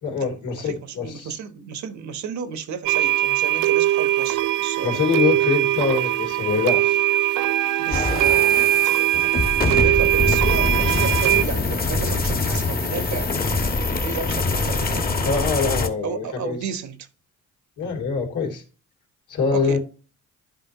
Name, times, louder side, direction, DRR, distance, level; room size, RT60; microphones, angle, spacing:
voice 1, 0.0-1.3 4.8-7.0 15.2-16.6 17.8-18.6 19.3-19.8, left 5 dB, 85° left, 3.0 m, -24 dB
voice 2, 0.6-5.0 7.8-8.9 9.7-13.3 14.0-15.1 16.0-17.1 19.5-19.8, right 7 dB, 65° right, 1.2 m, -33 dB
sound 1, 2.9-11.4, right 14 dB, 90° right, 0.5 m, -21 dB
sound 2, 7.9-15.9, left 3 dB, 30° left, 1.4 m, -24 dB
12.0 x 5.0 x 3.0 m
cardioid pair, 90°, 30 cm